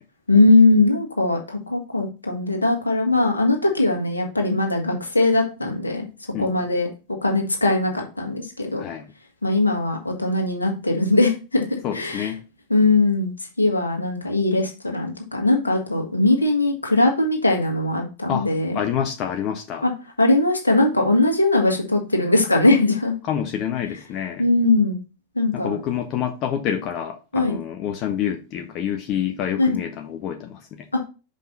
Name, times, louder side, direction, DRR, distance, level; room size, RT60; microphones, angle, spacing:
voice 1, 0.3-6.0 6.4-6.9 7.2-8.8 9.4-12.3 12.7-18.8 19.8-19.9 20.2-23.1 24.4-25.0 25.3-25.7 27.3-27.6 29.6-29.8 30.9-31.0, left 2 dB, 80° left, 1.8 m, -20 dB
voice 2, 11.8-12.5 18.3-18.5 18.7-19.8 23.2-24.4 25.5-30.9, left 9 dB, 40° left, 0.8 m, -27 dB
5.6 x 5.2 x 3.9 m
figure-of-eight pair, 90°, 0 cm